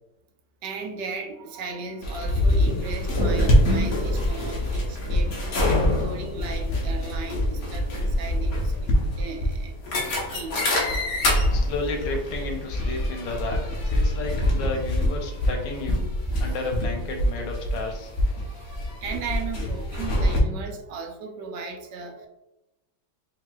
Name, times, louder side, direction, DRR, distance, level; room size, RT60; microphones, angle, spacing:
voice 1, 0.6-11.6 14.2-14.4 18.3-22.3, right 4 dB, 80° right, 3 dB, 1.3 m, -37 dB
sound 1, 2.0-20.4, left 1 dB, 60° left, 1.3 m, -25 dB
voice 2, 11.5-16.1 16.4-18.1, left 3 dB, 90° left, 2 dB, 1.4 m, -32 dB
4.9 x 3.3 x 2.3 m, 0.92 s
omnidirectional pair, 1.9 m